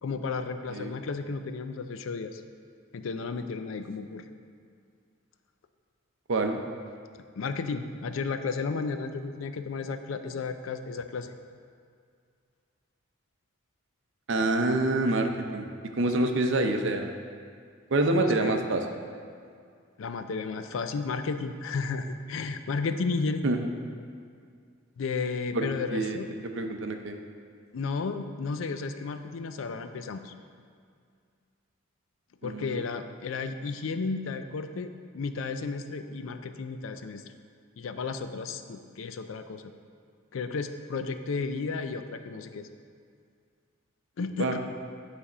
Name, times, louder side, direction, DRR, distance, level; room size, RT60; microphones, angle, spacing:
voice 1, 0.0-2.4 2.9-4.2 7.4-11.3 16.2-16.3 18.1-18.6 20.0-23.4 25.0-26.3 27.7-30.3 32.4-37.2 37.8-39.6 40.3-42.7 44.2-44.6, left 4 dB, 75° left, 9 dB, 0.4 m, -33 dB
voice 2, 6.3-6.6 14.3-15.7 16.0-17.1 17.9-18.9 23.4-23.7 25.5-27.2 32.4-32.8 44.4-44.6, right 2 dB, 60° right, 5 dB, 0.6 m, -27 dB
9.6 x 3.4 x 4.9 m, 2.2 s
head